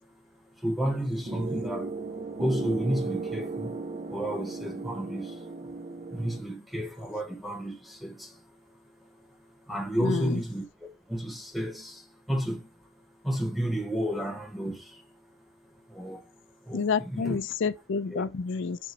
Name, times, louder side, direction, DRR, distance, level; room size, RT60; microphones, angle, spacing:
voice 1, 0.5-5.7 6.1-12.9 13.2-15.3 15.6-17.4 18.1-18.3, equal, ahead, 1.1 m, -33 dB
sound 1, 1.0-6.4, right 3 dB, 35° right, 0.5 m, -36 dB
voice 2, 10.0-10.4 16.7-18.8, left 5 dB, 65° left, 0.4 m, -29 dB
6.9 x 3.0 x 4.7 m
head